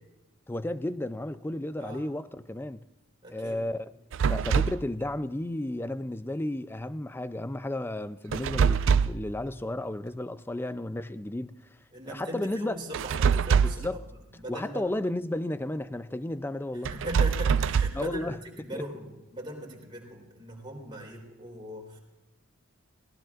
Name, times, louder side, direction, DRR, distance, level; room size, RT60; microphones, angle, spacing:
voice 1, 0.5-2.8 3.3-3.9 4.3-11.5 12.1-12.8 13.6-14.0 14.5-16.9 17.9-18.4 18.7-18.8, left 1 dB, 10° left, 0.4 m, -33 dB
voice 2, 3.2-3.6 11.9-14.0 14.3-14.8 16.9-18.3 18.5-22.0, equal, 25° right, 3.7 m, -39 dB
sound 1, 4.1-4.8 8.3-9.3 12.9-13.9 16.8-18.1, right 6 dB, 60° right, 0.3 m, -24 dB
18.0 x 18.0 x 2.5 m
head